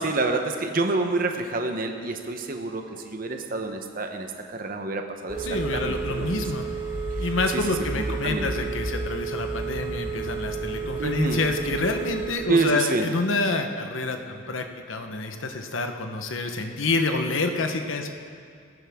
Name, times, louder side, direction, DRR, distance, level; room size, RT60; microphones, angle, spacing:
voice 1, 0.0-4.3 4.5-5.5 5.7-6.4 7.5-7.6 7.9-8.5 11.0-11.4 12.5-13.0, right 3 dB, 45° right, 4 dB, 0.9 m, -27 dB
Telephone, 5.3-12.3, right 4 dB, 15° right, 2.7 m, -31 dB
voice 2, 5.4-6.7 7.2-18.1, left 3 dB, 90° left, 5 dB, 1.0 m, -28 dB
18.5 x 14.5 x 3.6 m, 2.3 s
head